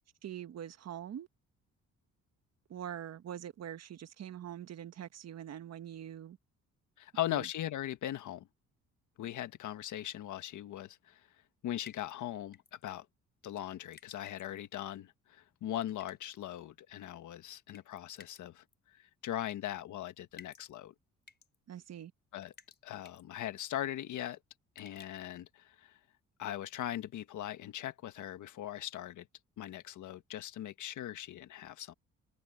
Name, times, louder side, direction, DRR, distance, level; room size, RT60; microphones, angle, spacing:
voice 1, 0.2-1.3 2.7-6.4 7.3-7.5 21.7-22.1, right 10 dB, 60° right, 1.3 m, -44 dB
voice 2, 7.0-8.5 9.2-11.3 11.6-13.0 13.4-18.6 18.9-20.9 22.3-22.5 22.8-24.4 24.7-26.0 26.4-29.3 29.6-31.9, left 12 dB, 75° left, 1.7 m, -40 dB
sound 1, 11.8-12.1 12.5-12.9 13.9-14.6 16.0-16.4 17.7-18.4 18.7-18.8 19.5-19.7 20.4-20.7 21.2-21.6 22.5-22.8 23.0-23.2 24.8-25.3, left 5 dB, 35° left, 4.3 m, -55 dB
cardioid pair, 90°, 30 cm